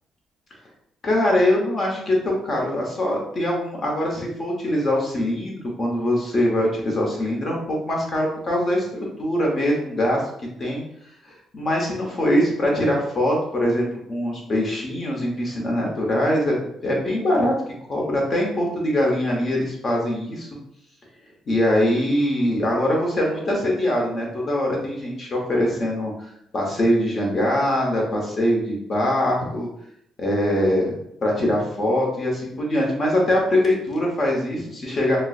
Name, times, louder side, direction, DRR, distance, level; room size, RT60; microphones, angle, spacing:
voice 1, 1.0-8.9 9.2-10.8 11.5-17.5 17.9-20.5 21.5-26.1 26.5-29.7 30.2-31.0 31.2-35.2, left 1 dB, 45° left, -1 dB, 1.0 m, -22 dB
4.1 x 2.1 x 2.4 m, 0.74 s
cardioid pair, 90°, 0 cm